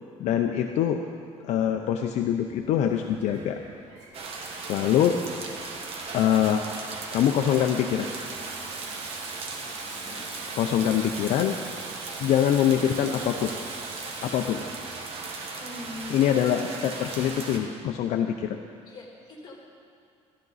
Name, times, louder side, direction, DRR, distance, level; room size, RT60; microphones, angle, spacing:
voice 1, 0.2-1.0 1.4-3.6 4.7-5.2 6.1-6.6 7.1-8.1 10.6-11.5 12.2-13.5 14.2-14.6 16.1-18.6, left 10 dB, 70° left, 4 dB, 0.6 m, -24 dB
Sink (filling or washing), 2.4-16.1, right 4 dB, 75° right, 1.7 m, -45 dB
sound 1, 4.1-17.6, right 3 dB, 50° right, 1.4 m, -37 dB
voice 2, 9.8-10.2 15.6-16.2 18.9-19.5, left 1 dB, 35° left, -2 dB, 2.9 m, -42 dB
13.5 x 13.0 x 4.1 m, 2.3 s
cardioid pair, 145°, 12 cm